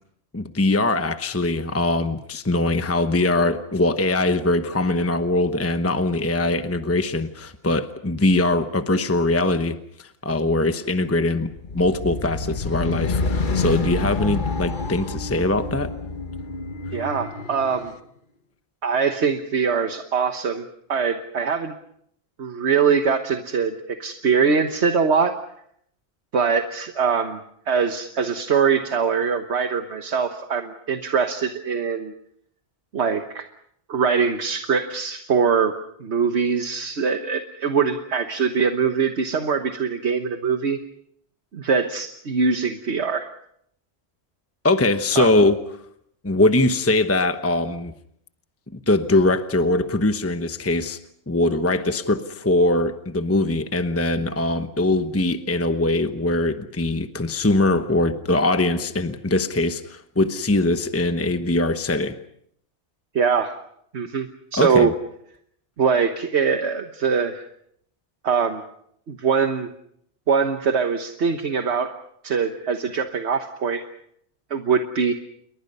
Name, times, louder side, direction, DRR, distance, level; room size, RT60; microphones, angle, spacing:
voice 1, 0.3-15.9 44.6-45.6 46.2-47.9 48.7-51.0 51.3-62.2 64.5-64.9, left 2 dB, 15° left, 8 dB, 1.0 m, -22 dB
sound 1, 11.4-17.9, left 3 dB, 50° left, 1.3 m, -28 dB
voice 2, 16.9-17.9 18.8-21.7 22.4-25.3 26.3-27.4 27.7-32.1 32.9-33.5 33.9-35.7 36.0-40.8 41.5-43.3 45.1-45.3 63.1-63.5 63.9-64.3 64.5-64.9 65.8-67.4 68.2-68.6 69.1-69.7 70.3-71.9 72.2-73.8 74.5-75.1, right 6 dB, 75° right, 6 dB, 1.5 m, -22 dB
29.0 x 23.0 x 5.5 m, 0.70 s
omnidirectional pair, 1.1 m